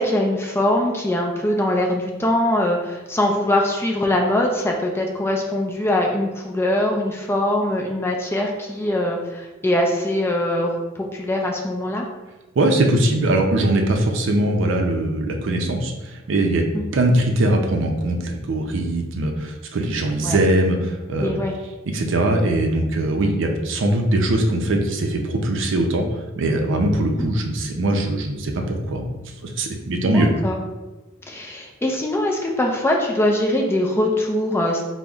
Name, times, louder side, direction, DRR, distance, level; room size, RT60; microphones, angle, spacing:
voice 1, 0.0-12.1 16.7-16.8 20.2-20.4 21.2-21.5 23.2-23.3 30.1-30.6 31.3-34.8, left 1 dB, 10° left, 1 dB, 0.3 m, -22 dB
voice 2, 12.6-16.6 16.9-21.3 21.9-29.1 29.4-30.3, right 1 dB, 65° right, 3 dB, 0.5 m, -21 dB
5.1 x 2.0 x 2.3 m, 1.1 s
head